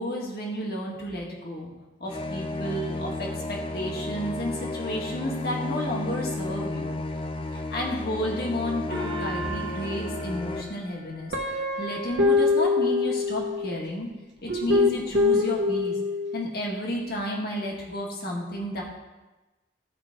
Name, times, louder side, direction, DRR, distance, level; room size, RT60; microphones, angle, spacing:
voice 1, 0.0-1.7 2.0-6.9 7.5-14.1 14.4-16.0 16.3-18.8, equal, 55° left, -2 dB, 1.9 m, -32 dB
sound 1, 2.1-10.6, left 2 dB, 30° left, 0.5 m, -33 dB
Gong, 8.9-11.8, right 2 dB, 75° left, 2.5 m, -37 dB
Guitar, 11.3-13.8 14.5-16.4, left 3 dB, 80° right, 1.1 m, -24 dB
15.0 x 5.3 x 3.6 m, 1.1 s
head